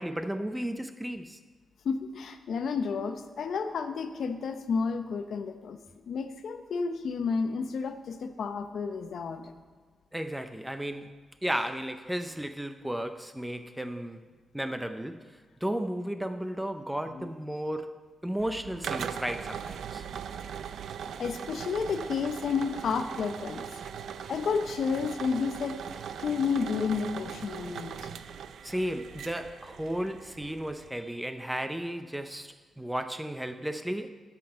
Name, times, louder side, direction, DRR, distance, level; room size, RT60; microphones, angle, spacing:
voice 1, 0.0-1.4 10.1-11.1 11.4-14.2 14.5-15.3 15.6-18.0 18.2-20.0 28.6-34.1, right 1 dB, 5° right, 0.5 m, -34 dB
voice 2, 1.8-5.8 6.1-9.5 17.1-17.3 21.2-23.7 24.3-25.8 26.2-28.1, left 5 dB, 65° left, 0.7 m, -31 dB
sound 1, 18.4-30.9, right 7 dB, 75° right, 0.4 m, -40 dB
11.5 x 5.9 x 6.4 m
wide cardioid pair, 130°, 0 cm